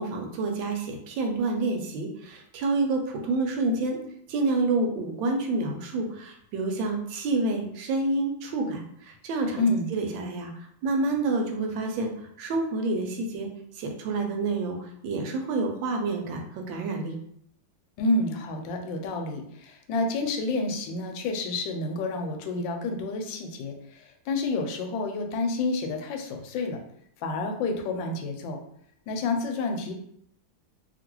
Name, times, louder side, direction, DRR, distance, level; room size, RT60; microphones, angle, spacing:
voice 1, 0.0-4.0 4.3-10.5 10.8-12.1 12.4-13.5 13.8-17.2, right 3 dB, 90° right, 3 dB, 1.4 m, -28 dB
voice 2, 9.6-9.9 18.0-26.8 27.2-28.6 29.1-29.9, left 2 dB, 85° left, 4 dB, 1.3 m, -29 dB
2.9 x 2.7 x 2.9 m, 0.70 s
omnidirectional pair, 2.0 m